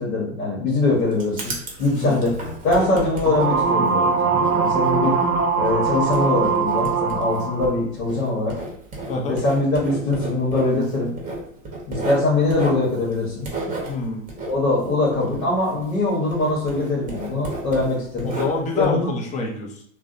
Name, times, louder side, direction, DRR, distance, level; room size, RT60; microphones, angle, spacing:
voice 1, 0.0-1.5 1.8-2.4 2.6-5.2 5.6-8.5 9.3-11.1 11.9-13.5 14.5-18.3 18.7-19.1, left 2 dB, 75° left, -4 dB, 0.9 m, -22 dB
Writing, 0.7-16.0 16.3-18.9, right 2 dB, 20° right, 0.7 m, -33 dB
sound 1, 3.3-7.8, right 5 dB, 70° right, 0.5 m, -21 dB
voice 2, 13.9-14.3 18.2-19.8, left 3 dB, 20° left, 0 dB, 0.4 m, -26 dB
2.6 x 2.0 x 2.4 m, 0.64 s
hypercardioid pair, 100°, 41 cm